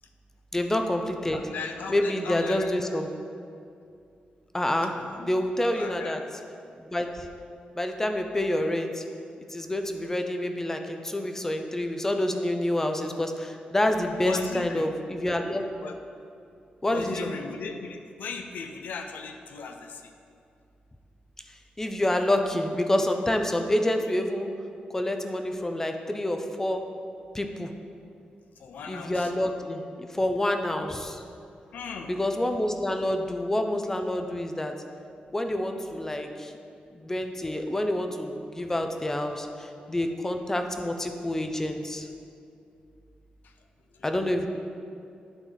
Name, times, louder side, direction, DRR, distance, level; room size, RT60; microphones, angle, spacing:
voice 1, 0.5-1.4 1.9-3.1 4.5-6.2 6.8-7.3 7.7-9.0 9.5-15.7 16.8-17.3 21.8-24.5 24.9-26.9 27.3-27.7 28.9-31.2 32.1-34.7 35.3-36.5 37.0-42.1 44.0-44.5, left 1 dB, 15° left, 5 dB, 0.5 m, -28 dB
voice 2, 1.3-3.0 5.0-6.2 14.2-14.9 15.8-16.0 16.9-20.1 28.6-29.3 31.7-32.2 43.4-43.5 44.0-44.2, left 5 dB, 85° left, 6 dB, 0.5 m, -38 dB
11.0 x 3.9 x 4.0 m, 2.5 s
wide cardioid pair, 125°, 3 cm